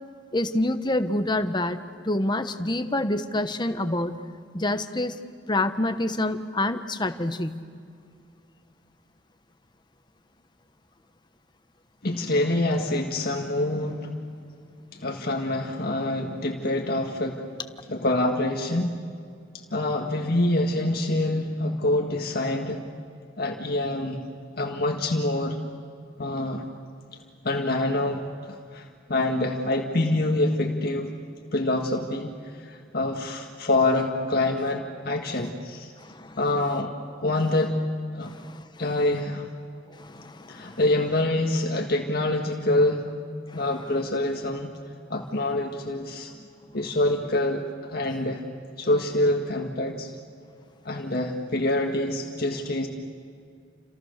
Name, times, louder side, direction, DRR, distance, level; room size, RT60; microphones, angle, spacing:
voice 1, 0.3-1.8 2.0-4.2 4.5-5.2 5.5-7.5 36.0-36.4 38.3-38.7 39.9-40.8 43.5-43.6 46.4-46.5, left 1 dB, 25° left, 9 dB, 1.2 m, -27 dB
voice 2, 12.0-14.1 15.0-17.4 17.9-18.9 19.7-22.8 23.4-24.2 24.6-25.6 26.2-26.6 27.4-28.2 28.5-28.8 29.1-31.1 31.5-32.3 32.6-35.9 36.4-36.9 37.2-37.8 38.1-38.3 38.8-39.5 40.5-43.1 43.5-44.7 45.1-46.3 46.7-48.4 48.8-50.1 50.8-52.9, left 1 dB, 55° left, 2 dB, 1.9 m, -26 dB
30.0 x 27.5 x 6.7 m, 2.3 s
head